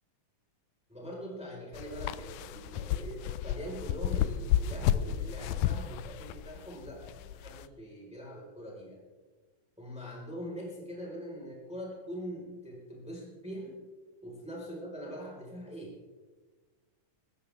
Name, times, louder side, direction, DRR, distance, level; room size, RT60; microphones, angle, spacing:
voice 1, 0.9-9.0 9.8-13.7 14.2-16.1, equal, ahead, -3 dB, 4.3 m, -43 dB
sound 1, 1.7-7.7, left 11 dB, 80° left, 1.8 m, -32 dB
25.5 x 14.0 x 3.5 m, 1.3 s
omnidirectional pair, 3.9 m